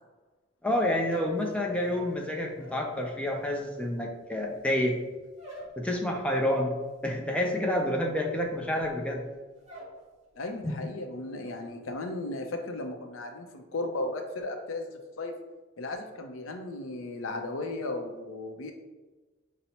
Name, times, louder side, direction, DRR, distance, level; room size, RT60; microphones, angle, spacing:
voice 1, 0.6-5.0 5.8-6.8 7.0-9.2 10.6-10.8, left 1 dB, 5° left, 0 dB, 0.4 m, -28 dB
sound 1, 0.9-2.9 3.2-10.0 10.3-10.8 11.1-11.6, equal, 35° right, 1.1 m, -49 dB
voice 2, 10.4-15.4 15.8-18.7, left 2 dB, 80° left, 5 dB, 0.5 m, -35 dB
5.4 x 2.0 x 2.8 m, 1.2 s
head